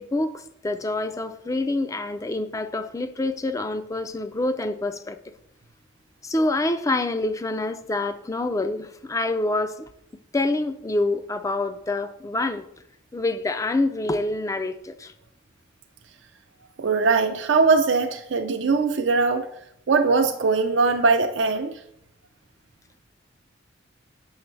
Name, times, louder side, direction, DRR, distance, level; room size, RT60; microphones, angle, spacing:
voice 1, 0.0-5.2 6.2-9.9 10.3-12.6 13.1-15.1, left 2 dB, 15° left, 0.4 m, -26 dB
voice 2, 16.8-19.5 19.9-21.7, right 4 dB, 65° right, 0.5 m, -21 dB
7.1 x 6.0 x 3.2 m
head